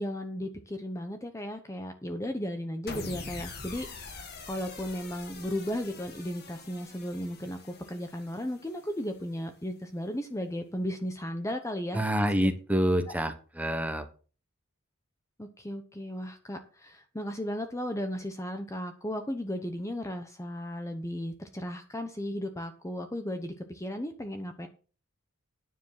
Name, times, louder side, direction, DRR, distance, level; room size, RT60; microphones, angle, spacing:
voice 1, 0.0-12.0 12.4-12.5 15.4-24.7, equal, 15° left, 7 dB, 0.9 m, -35 dB
sound 1, 2.9-9.2, left 3 dB, 50° left, 1.9 m, -44 dB
voice 2, 11.9-14.1, equal, 5° right, 8 dB, 1.2 m, -27 dB
9.8 x 7.3 x 5.7 m, 0.37 s
head